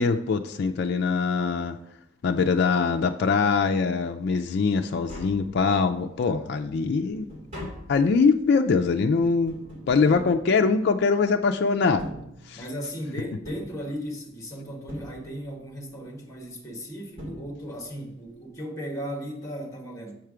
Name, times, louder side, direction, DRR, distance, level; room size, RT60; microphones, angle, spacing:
voice 1, 0.0-1.8 2.2-7.3 7.6-9.6 9.9-12.1 12.5-12.6, left 4 dB, 55° left, 5 dB, 0.4 m, -23 dB
Tap, 4.6-4.7 4.9-6.0 6.5-11.2 11.8-12.9 13.4-14.4 14.9-15.7 16.7-16.8 17.2-18.0 18.3-18.4, equal, 35° right, 2.3 m, -43 dB
voice 2, 12.5-20.2, equal, 15° left, 1 dB, 1.3 m, -36 dB
7.3 x 4.5 x 4.9 m, 0.80 s
head